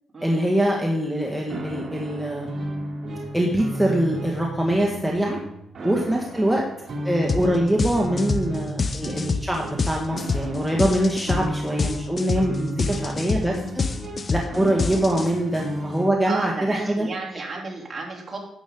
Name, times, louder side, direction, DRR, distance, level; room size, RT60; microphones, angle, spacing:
voice 1, 0.2-2.6 3.3-5.4 5.8-6.6 7.0-13.8 14.3-17.1, right 1 dB, 5° right, -2 dB, 1.8 m, -23 dB
sound 1, 1.5-16.1, right 1 dB, 50° right, 2.9 m, -33 dB
sound 2, 7.3-7.5 7.8-15.6, left 4 dB, 40° left, 0.8 m, -26 dB
voice 2, 16.2-18.4, right 3 dB, 30° right, -3 dB, 3.3 m, -32 dB
11.5 x 8.7 x 3.9 m, 0.75 s
cardioid pair, 80°, 0 cm